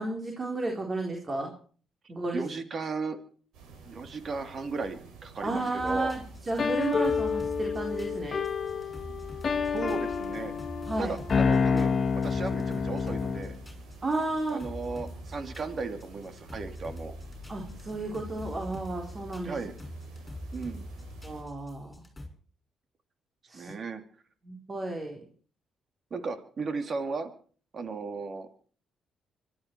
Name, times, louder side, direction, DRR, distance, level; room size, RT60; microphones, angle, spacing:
voice 1, 0.0-1.5 2.1-2.4 5.4-8.4 10.9-11.1 14.0-14.6 17.5-19.6 21.2-22.0 23.5-23.7 24.4-25.2, right 2 dB, 30° right, 1 dB, 3.8 m, -32 dB
voice 2, 2.3-3.2 3.9-6.1 9.7-10.5 11.0-13.5 14.5-17.1 19.4-19.7 20.5-20.9 23.5-24.0 26.1-27.3 27.7-28.6, right 4 dB, 45° right, 8 dB, 2.8 m, -35 dB
sound 1, 3.5-21.4, right 4 dB, 90° right, 5.1 m, -50 dB
sound 2, 5.8-22.3, left 1 dB, 15° left, 6.2 m, -44 dB
sound 3, 6.6-13.5, left 5 dB, 40° left, 1.7 m, -28 dB
25.0 x 12.0 x 4.6 m, 0.43 s
cardioid pair, 90°, 0 cm